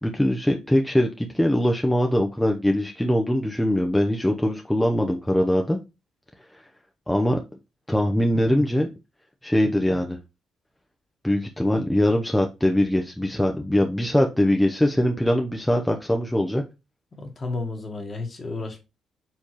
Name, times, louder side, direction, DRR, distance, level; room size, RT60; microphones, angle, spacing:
voice 1, 0.0-5.8 6.5-6.6 7.1-7.4 7.9-8.9 9.4-10.2 11.2-16.6, left 1 dB, 5° left, 0.6 m, -22 dB
voice 2, 17.1-18.8, left 3 dB, 35° left, 1.3 m, -32 dB
4.5 x 3.4 x 3.0 m
cardioid pair, 90°, 0 cm